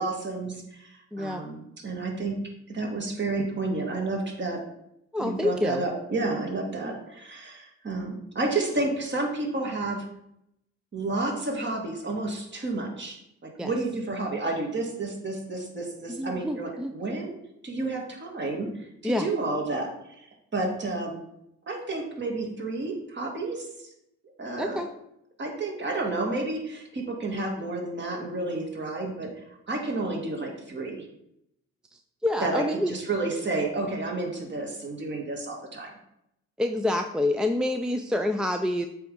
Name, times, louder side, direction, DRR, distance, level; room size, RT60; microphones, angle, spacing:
voice 1, 0.0-2.4 2.7-4.6 5.2-10.0 10.9-13.2 13.6-17.4 17.6-19.9 20.2-20.3 20.5-21.2 21.7-23.7 24.4-24.8 25.4-29.3 29.7-31.0 32.4-35.9, right 2 dB, 40° right, 0 dB, 2.2 m, -30 dB
voice 2, 1.1-1.4 5.1-5.8 13.6-13.7 16.1-16.9 19.0-19.3 24.6-24.9 32.2-32.9 36.6-38.9, left 1 dB, 5° right, 5 dB, 0.5 m, -27 dB
7.6 x 3.5 x 5.4 m, 0.78 s
cardioid pair, 90°, 30 cm